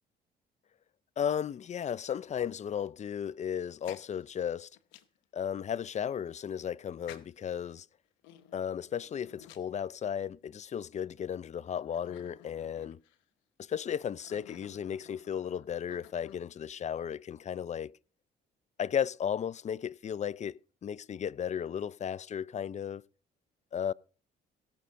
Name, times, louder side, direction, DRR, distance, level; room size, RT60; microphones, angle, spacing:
voice 1, 1.2-4.7 5.3-7.9 8.5-13.0 13.6-17.9 18.8-23.0 23.7-23.9, left 8 dB, 40° left, 0.4 m, -35 dB
sound 1, 3.7-5.2 5.9-6.0 7.1-7.6 8.2-10.3 10.9-11.0 11.6-13.2 14.0-16.7, left 12 dB, 90° left, 0.9 m, -54 dB
16.5 x 6.4 x 5.6 m
supercardioid pair, 70°, 19 cm